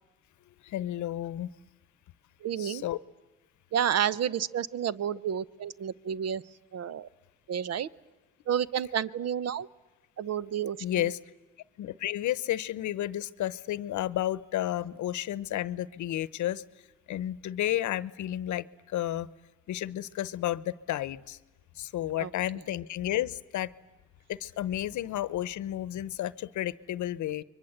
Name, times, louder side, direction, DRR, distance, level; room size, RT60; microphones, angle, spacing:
voice 1, 0.6-1.5 2.6-3.0 10.8-11.2 11.8-16.6 17.1-19.3 19.7-21.4 21.8-23.7 24.3-27.4, left 13 dB, 75° left, 0.9 m, -32 dB
voice 2, 2.4-2.8 3.7-6.4 6.7-7.1 7.5-7.9 8.5-9.7 10.2-11.1 22.2-22.3, right 9 dB, 55° right, 0.8 m, -30 dB
29.5 x 23.5 x 8.0 m
cardioid pair, 90°, 30 cm